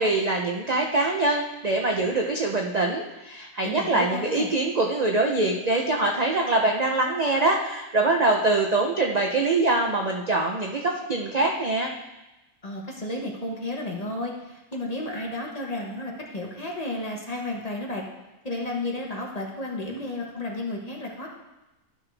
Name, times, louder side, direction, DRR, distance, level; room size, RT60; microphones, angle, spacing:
voice 1, 0.0-11.9, right 2 dB, 50° right, 1 dB, 0.5 m, -24 dB
voice 2, 3.6-4.5 12.6-18.0 18.4-21.3, left 1 dB, 30° left, -1 dB, 1.2 m, -32 dB
12.5 x 5.8 x 3.3 m, 1.0 s
omnidirectional pair, 1.5 m